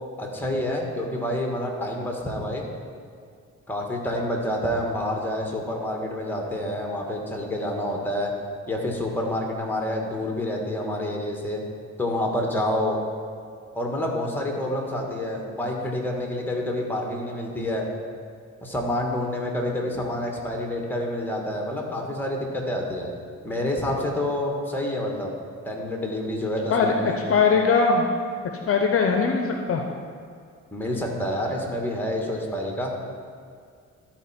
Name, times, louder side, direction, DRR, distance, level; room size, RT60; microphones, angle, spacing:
voice 1, 0.2-2.6 3.7-8.3 8.7-11.6 12.0-13.0 13.7-17.9 18.6-23.1 23.4-25.3 25.6-27.2 30.7-32.9, left 1 dB, 5° left, 0 dB, 1.5 m, -28 dB
voice 2, 27.3-28.0 28.7-29.8, left 5 dB, 45° left, 3 dB, 0.7 m, -20 dB
13.0 x 4.4 x 4.3 m, 2.2 s
cardioid pair, 90°, 30 cm